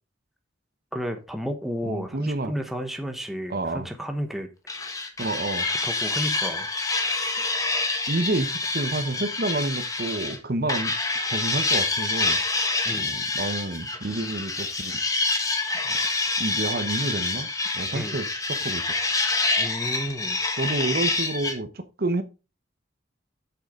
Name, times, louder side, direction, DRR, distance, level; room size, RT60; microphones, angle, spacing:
voice 1, 0.9-4.5 5.7-6.7 12.8-13.1 17.9-18.2 19.6-20.4, equal, ahead, 1.1 m, -32 dB
voice 2, 1.8-2.5 3.5-3.9 5.2-5.7 8.1-10.9 11.3-12.7 12.9-15.0 15.8-16.0 16.4-17.5 17.7-18.9 20.6-22.2, right 2 dB, 50° right, 0.8 m, -29 dB
sound 1, 4.7-10.4 10.7-21.6, left 3 dB, 20° left, 1.2 m, -27 dB
8.2 x 6.6 x 3.7 m
head